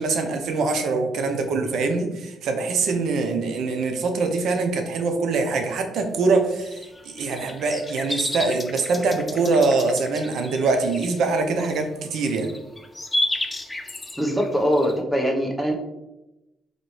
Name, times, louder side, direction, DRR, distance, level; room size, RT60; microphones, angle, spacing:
voice 1, 0.0-12.5, right 3 dB, 75° right, 5 dB, 0.6 m, -23 dB
sound 1, 6.1-14.9, left 1 dB, 15° left, 0.5 m, -32 dB
voice 2, 14.2-15.7, equal, 5° right, 0 dB, 0.9 m, -22 dB
4.1 x 3.0 x 3.1 m, 0.94 s
cardioid pair, 90°, 0 cm